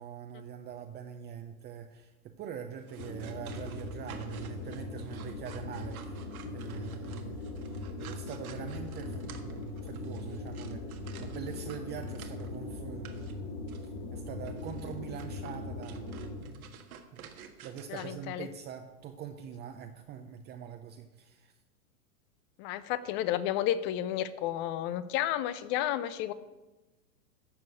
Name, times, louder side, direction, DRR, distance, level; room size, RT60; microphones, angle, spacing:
voice 1, 0.0-13.5 13.8-16.1 16.4-16.8 17.1-17.3 17.6-21.5, right 8 dB, 25° right, 6 dB, 0.6 m, -44 dB
sound 1, 2.8-12.6 13.0-13.3 13.7-13.9 14.4-18.1, right 8 dB, 75° right, 1.6 m, -52 dB
sound 2, 3.0-16.6, left 2 dB, 50° left, 2.6 m, -40 dB
voice 2, 17.9-18.5 22.6-26.3, left 12 dB, 25° left, 15 dB, 0.4 m, -32 dB
13.0 x 4.5 x 8.6 m, 1.1 s
hypercardioid pair, 120°, 43 cm